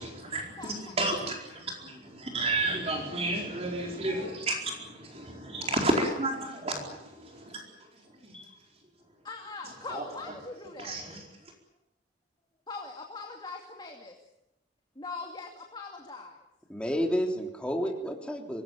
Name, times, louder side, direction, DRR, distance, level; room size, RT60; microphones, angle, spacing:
voice 1, 0.0-7.6 9.9-10.0 10.8-11.2, right 2 dB, 35° right, 1 dB, 4.5 m, -32 dB
voice 2, 9.2-11.0 12.7-14.1 15.0-16.4, left 3 dB, 25° left, 2 dB, 2.6 m, -41 dB
voice 3, 16.7-18.6, equal, 5° left, 2 dB, 3.4 m, -31 dB
25.0 x 19.0 x 9.2 m, 0.88 s
head